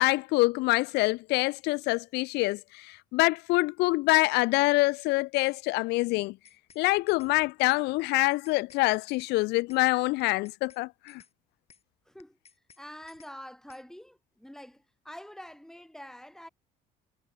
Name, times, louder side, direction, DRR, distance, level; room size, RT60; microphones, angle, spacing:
voice 1, 0.0-6.3 6.8-11.2, left 22 dB, 90° left, 0.5 m, -25 dB
sound 1, 6.2-6.8 7.1-7.3 7.7-7.8 8.2-8.8 9.1-9.3 9.7-9.8 10.2-10.8 11.1-11.3 11.7-11.8 12.2-12.8 13.1-13.3 13.7-13.8, left 6 dB, 35° left, 7.7 m, -58 dB
voice 2, 12.1-12.4 12.8-16.5, equal, 5° left, 7.3 m, -46 dB
cardioid pair, 110°, 17 cm